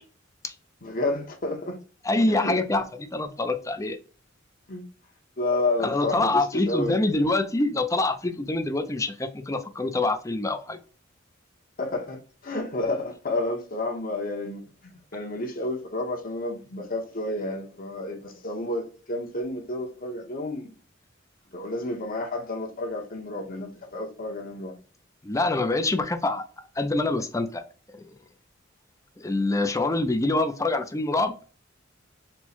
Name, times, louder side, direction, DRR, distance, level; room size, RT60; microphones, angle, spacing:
voice 1, 0.8-1.8 2.3-2.5 4.7-4.8 5.4-7.3 11.8-20.7 21.5-24.7, left 2 dB, 45° left, 1.1 m, -30 dB
voice 2, 2.0-4.0 5.8-10.8 25.2-27.6 27.9-28.1 29.2-31.3, left 2 dB, 15° left, 0.5 m, -25 dB
4.4 x 2.3 x 4.3 m
head